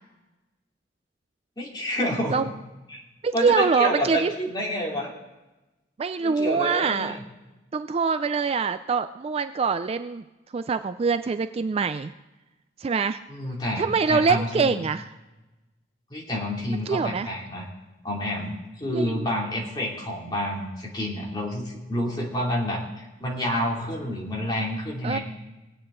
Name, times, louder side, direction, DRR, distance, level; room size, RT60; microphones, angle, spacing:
voice 1, 1.6-2.5 2.9-3.0 3.3-5.1 6.2-7.2 13.3-14.8 16.1-17.7 18.0-25.2, equal, 25° left, -3 dB, 2.8 m, -29 dB
voice 2, 3.2-4.3 6.0-7.2 7.7-10.2 10.5-12.1 12.8-13.2 13.8-15.1 16.9-17.3 18.9-19.3 25.0-25.2, right 5 dB, 30° right, 11 dB, 0.3 m, -24 dB
20.0 x 8.9 x 3.8 m, 1.1 s
head